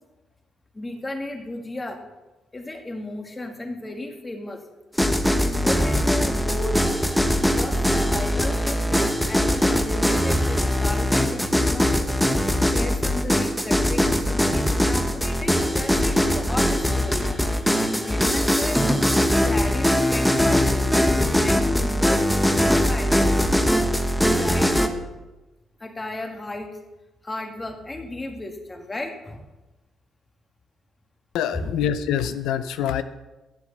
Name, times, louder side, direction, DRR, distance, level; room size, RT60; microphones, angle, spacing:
voice 1, 0.7-2.0 2.5-4.7 5.4-6.9 7.4-12.0 12.7-17.4 17.7-18.8 19.4-23.3 24.3-24.8 25.8-26.8 27.2-29.5 31.5-31.7, left 2 dB, 20° left, 4 dB, 2.2 m, -34 dB
sound 1, 5.0-24.9, equal, ahead, 1.3 m, -21 dB
voice 2, 31.3-33.0, left 9 dB, 90° left, 11 dB, 0.6 m, -25 dB
13.0 x 8.1 x 6.8 m, 1.1 s
cardioid pair, 90°, 0 cm